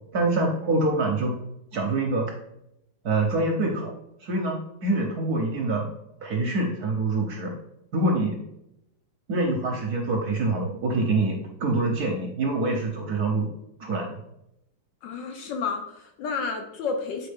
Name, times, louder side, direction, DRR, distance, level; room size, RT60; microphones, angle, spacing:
voice 1, 0.1-1.3 1.7-2.3 3.0-3.9 4.2-5.9 6.2-7.5 7.9-8.4 9.3-13.5 13.8-14.2, right 2 dB, 60° right, 2 dB, 1.0 m, -25 dB
voice 2, 15.0-17.3, left 5 dB, 70° left, 5 dB, 1.2 m, -31 dB
7.3 x 4.4 x 3.4 m, 0.83 s
omnidirectional pair, 2.3 m